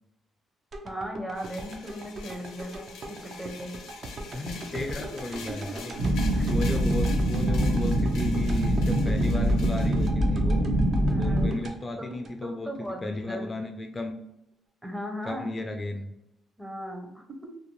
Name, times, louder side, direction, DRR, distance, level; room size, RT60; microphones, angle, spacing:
sound 1, 0.7-12.9 13.3-13.4, right 2 dB, 55° right, 0.4 m, -41 dB
voice 1, 0.8-3.7 5.5-5.6 6.3-6.5 11.1-11.5 12.0-13.4 14.8-15.5 16.6-17.5, equal, 15° right, 3 dB, 0.6 m, -38 dB
sound 2, 1.3-10.1, left 5 dB, 85° left, 0.5 m, -45 dB
voice 2, 4.3-5.9 6.5-10.7 11.2-12.7 13.0-14.1 15.2-16.1, left 2 dB, 25° left, 4 dB, 0.3 m, -34 dB
sound 3, 6.0-11.5, right 1 dB, 85° right, 0.7 m, -24 dB
2.5 x 2.1 x 2.9 m, 0.83 s
cardioid pair, 90°, 0 cm